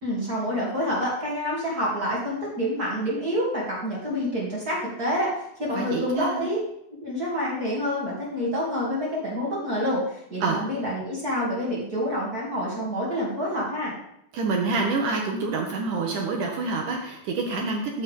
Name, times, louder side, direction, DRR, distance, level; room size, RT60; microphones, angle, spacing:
voice 1, 0.0-5.3 5.6-6.6 7.0-14.0, equal, 25° right, -5 dB, 2.4 m, -27 dB
voice 2, 5.7-6.5 10.4-10.6 14.3-18.0, right 3 dB, 70° right, 1 dB, 2.2 m, -27 dB
14.5 x 6.6 x 3.6 m, 0.76 s
omnidirectional pair, 4.5 m